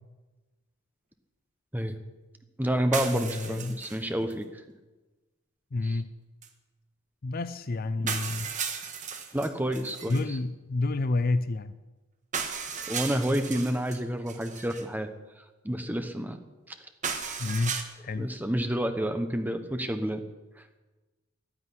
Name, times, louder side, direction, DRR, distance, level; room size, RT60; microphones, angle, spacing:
voice 1, 2.6-4.5 5.8-6.0 9.3-10.4 12.9-15.1 15.6-16.4 18.2-20.2, equal, 10° right, 7 dB, 1.0 m, -29 dB
sound 1, 2.9-4.0 4.3-4.4 6.4-6.5 7.4-7.5 8.1-10.2 12.3-14.0 14.3-14.8 17.0-17.8, right 6 dB, 35° right, 1.4 m, -35 dB
voice 2, 3.1-3.8 5.7-6.1 7.2-8.5 10.1-11.7 17.4-18.3, left 2 dB, 45° left, 14 dB, 0.5 m, -29 dB
11.5 x 9.8 x 10.0 m, 1.2 s
head